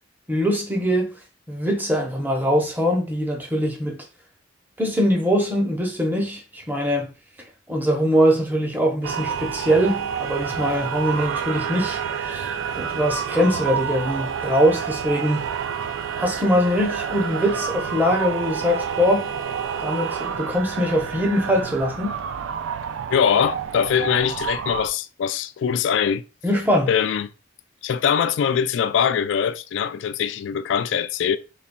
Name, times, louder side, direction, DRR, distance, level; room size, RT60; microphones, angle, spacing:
voice 1, 0.3-1.1 1.5-4.0 4.8-7.1 7.7-15.4 16.2-19.3 19.8-22.2 26.4-26.9, equal, 10° right, 0.7 m, -22 dB
sound 1, 9.0-24.9, right 7 dB, 90° right, 0.3 m, -29 dB
voice 2, 23.1-26.2 26.9-27.3 27.8-31.4, left 7 dB, 70° left, 0.3 m, -22 dB
3.9 x 3.2 x 2.2 m
head